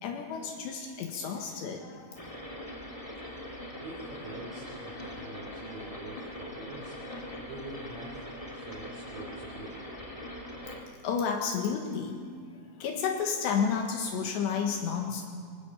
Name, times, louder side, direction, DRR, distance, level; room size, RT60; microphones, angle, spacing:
voice 1, 0.0-2.2 11.0-15.3, left 6 dB, 75° left, 2 dB, 3.6 m, -31 dB
voice 2, 1.2-1.6 3.2-7.0 7.4-8.2 8.5-9.8, right 2 dB, 40° right, -3 dB, 3.9 m, -46 dB
sound 1, 2.1-10.8, left 1 dB, 20° left, 0.9 m, -42 dB
23.5 x 21.0 x 7.2 m, 2.2 s
omnidirectional pair, 5.2 m